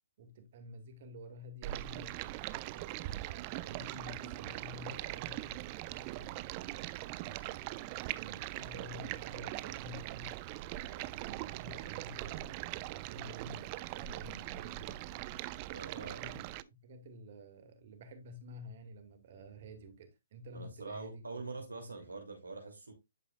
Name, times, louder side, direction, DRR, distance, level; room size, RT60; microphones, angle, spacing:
voice 1, 0.2-2.2 2.6-6.7 7.1-10.4 10.8-15.3 15.9-16.5 16.7-21.4 21.8-22.0, equal, 50° right, 2.1 m, -50 dB
Stream, 1.6-16.6, right 16 dB, 30° right, 0.4 m, -41 dB
voice 2, 15.7-16.3 20.5-22.9, right 3 dB, 85° right, 2.7 m, -44 dB
11.0 x 4.7 x 2.4 m
hypercardioid pair, 140°, 0 cm